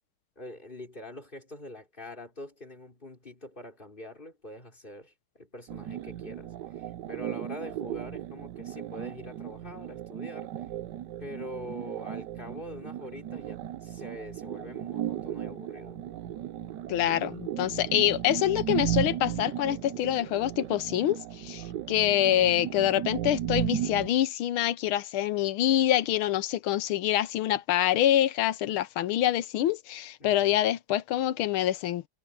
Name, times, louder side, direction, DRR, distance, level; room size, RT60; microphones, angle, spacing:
voice 1, 0.3-10.6 11.2-16.0 30.2-30.7, left 1 dB, 20° left, 5.1 m, -44 dB
sound 1, 5.7-24.1, right 11 dB, 65° right, 1.1 m, -35 dB
voice 2, 16.9-32.1, left 12 dB, 80° left, 1.6 m, -26 dB
omnidirectional pair, 2.3 m